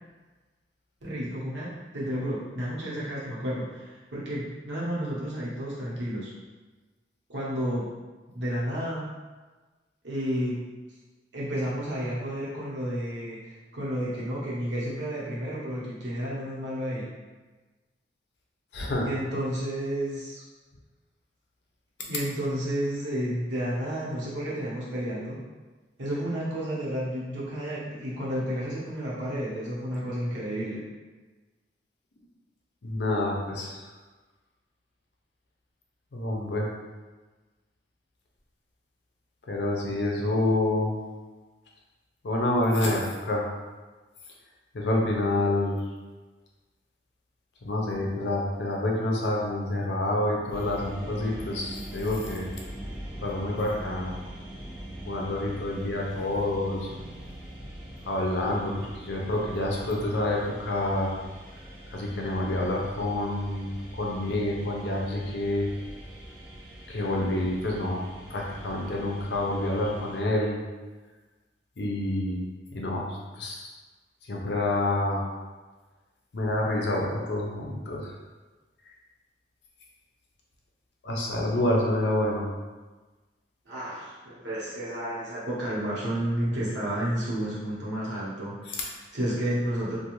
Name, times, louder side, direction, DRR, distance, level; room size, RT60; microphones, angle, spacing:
voice 1, 1.0-6.3 7.3-7.9 8.3-9.1 10.0-10.6 11.3-17.1 19.0-20.4 22.1-25.4 26.0-30.8 81.5-81.8 83.7-90.0, equal, 80° right, -7 dB, 0.9 m, -31 dB
voice 2, 18.7-19.1 32.8-33.9 36.1-36.7 39.5-40.9 42.2-43.4 44.7-45.8 47.6-52.5 53.2-54.1 55.1-56.9 58.1-61.2 61.9-65.7 66.9-68.0 68.3-70.6 71.8-72.4 72.7-73.7 74.3-75.3 76.3-78.1 81.0-82.5 88.7-88.8, left 1 dB, 65° left, -2 dB, 0.5 m, -28 dB
sound 1, 50.5-70.2, right 1 dB, 15° right, 0.9 m, -42 dB
2.4 x 2.2 x 3.0 m, 1.3 s
head